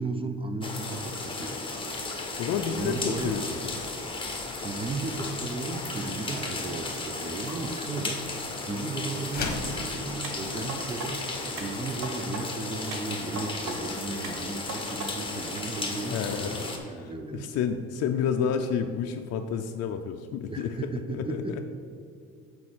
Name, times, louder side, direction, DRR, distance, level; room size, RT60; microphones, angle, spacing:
voice 1, 0.0-1.6 2.7-3.4 4.6-8.2 8.6-17.5 20.5-21.6, right 3 dB, 15° right, 7 dB, 0.5 m, -35 dB
sound 1, 0.6-16.8, left 3 dB, 15° left, 1.1 m, -35 dB
voice 2, 2.4-3.7 10.4-10.7 16.1-16.7 17.0-21.6, left 7 dB, 55° left, 5 dB, 0.5 m, -30 dB
sound 2, 9.2-9.8, left 4 dB, 30° left, 1.3 m, -32 dB
sound 3, 10.2-11.1 11.6-12.4 12.9-13.8 14.2-15.1 15.6-15.7, right 3 dB, 70° right, 1.2 m, -38 dB
6.1 x 4.3 x 6.0 m, 2.4 s
supercardioid pair, 85°, 31 cm